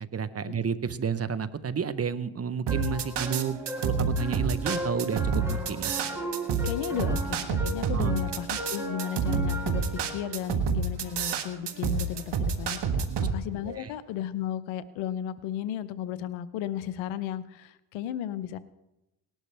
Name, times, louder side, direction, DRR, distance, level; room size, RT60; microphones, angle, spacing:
voice 1, 0.0-5.9 7.9-8.1 12.9-13.3 13.6-13.9, right 6 dB, 30° right, 15 dB, 0.9 m, -31 dB
sound 1, 2.7-10.4, right 1 dB, 5° right, 5.4 m, -36 dB
sound 2, 2.7-13.3, right 5 dB, 60° right, 1.6 m, -28 dB
voice 2, 6.6-18.6, left 10 dB, 85° left, 16 dB, 0.8 m, -34 dB
19.0 x 12.0 x 3.4 m, 0.94 s
supercardioid pair, 65°, 46 cm